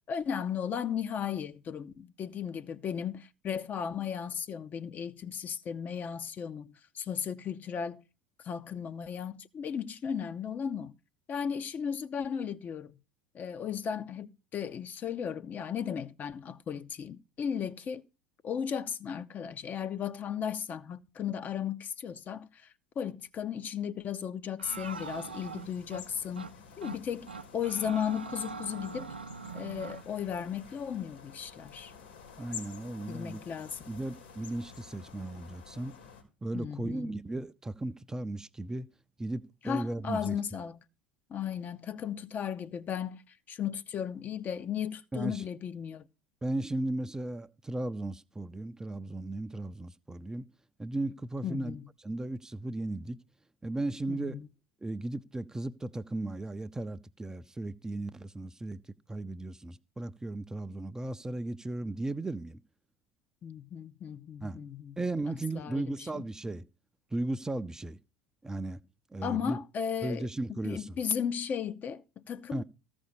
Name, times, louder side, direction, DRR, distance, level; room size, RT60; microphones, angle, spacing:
voice 1, 0.1-8.0 8.4-10.9 11.3-13.0 13.3-18.0 18.4-29.1 29.5-31.9 33.1-33.9 36.5-37.1 39.6-40.8 41.3-46.1 51.4-51.8 54.1-54.5 63.4-64.9 65.3-66.2 69.2-72.6, left 8 dB, 35° left, 0.7 m, -35 dB
sound 1, 24.6-36.2, left 7 dB, 75° left, 3.1 m, -50 dB
sound 2, 24.6-26.0 26.4-26.5 26.8-27.0 27.3-30.0, right 5 dB, 85° right, 0.5 m, -42 dB
voice 2, 32.4-33.4 33.9-35.9 36.4-38.9 39.2-40.4 45.1-45.4 46.4-50.5 50.8-51.8 52.0-53.2 53.6-54.4 54.8-58.8 59.1-62.6 64.4-64.7 65.0-66.7 67.1-68.0 68.4-68.8 69.1-69.6 70.0-71.0 72.5-72.6, right 2 dB, 10° right, 0.5 m, -36 dB
14.5 x 5.2 x 7.0 m
figure-of-eight pair, 70°, 5 cm